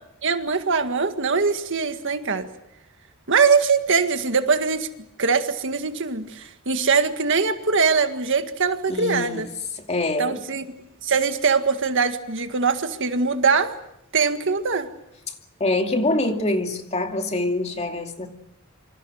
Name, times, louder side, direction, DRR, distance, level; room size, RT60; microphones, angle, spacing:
voice 1, 0.2-2.5 3.3-4.9 5.2-9.5 10.2-10.6 11.0-13.7 14.1-14.9, right 5 dB, 60° right, 1.8 m, -22 dB
voice 2, 8.9-9.5 9.8-10.4 15.6-18.3, left 2 dB, 30° left, 2.5 m, -25 dB
27.0 x 26.0 x 6.4 m
head